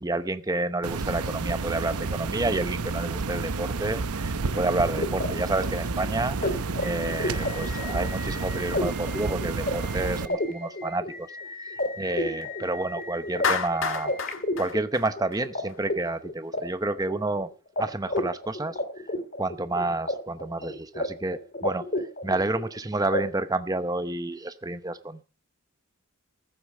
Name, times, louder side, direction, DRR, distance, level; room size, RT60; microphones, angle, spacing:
voice 1, 0.0-6.4 6.8-14.1 14.6-17.5 17.8-18.8 19.4-21.8 22.2-25.2, right 2 dB, 15° right, 11 dB, 0.8 m, -29 dB
sound 1, 0.8-10.3, right 4 dB, 85° right, 0.8 m, -30 dB
sound 2, 4.5-15.6 15.9-17.4 17.8-17.9 18.1-20.1 20.4-21.1 21.3-22.7 23.1-23.2, left 1 dB, 40° left, 2.3 m, -32 dB
Clapping, 13.4-15.7, left 6 dB, 60° left, 1.6 m, -29 dB
14.5 x 8.7 x 6.5 m, 0.36 s
head